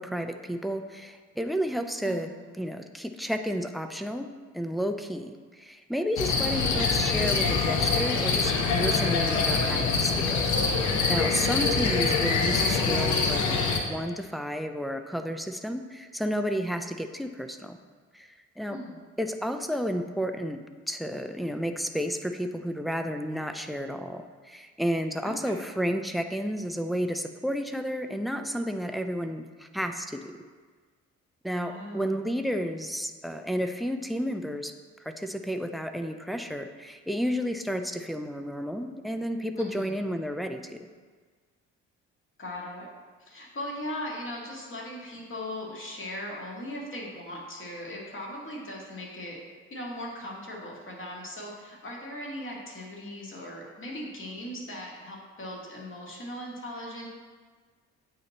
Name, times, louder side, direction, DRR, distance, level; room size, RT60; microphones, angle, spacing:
voice 1, 0.0-2.3 2.6-4.3 4.5-10.5 11.1-17.8 18.1-18.8 19.2-30.2 31.4-34.7 35.0-40.9, equal, ahead, 7 dB, 0.3 m, -32 dB
voice 2, 2.0-2.5 11.6-11.9 18.7-19.0 25.2-25.5 31.6-32.2 39.6-39.9 42.4-42.9 43.2-49.4 49.7-57.1, left 1 dB, 35° left, -3 dB, 1.8 m, -39 dB
sound 1, 6.2-13.8, left 4 dB, 55° left, 0.8 m, -25 dB
8.5 x 2.9 x 4.1 m, 1.5 s
figure-of-eight pair, 45°, 36 cm